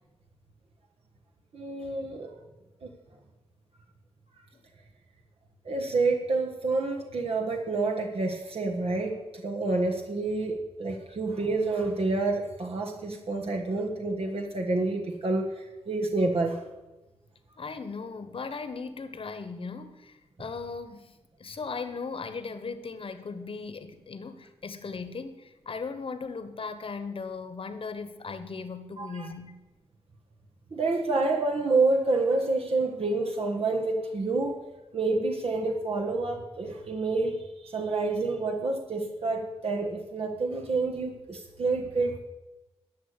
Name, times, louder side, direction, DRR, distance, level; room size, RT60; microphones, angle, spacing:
voice 1, 1.5-2.3 2.8-2.9 5.6-16.6 29.0-29.3 30.7-34.6 34.9-42.2, right 3 dB, 60° right, 1 dB, 1.4 m, -28 dB
voice 2, 17.6-21.1 21.4-29.6, left 4 dB, 55° left, 10 dB, 1.3 m, -38 dB
12.0 x 6.7 x 8.4 m, 1.1 s
wide cardioid pair, 95°, 11 cm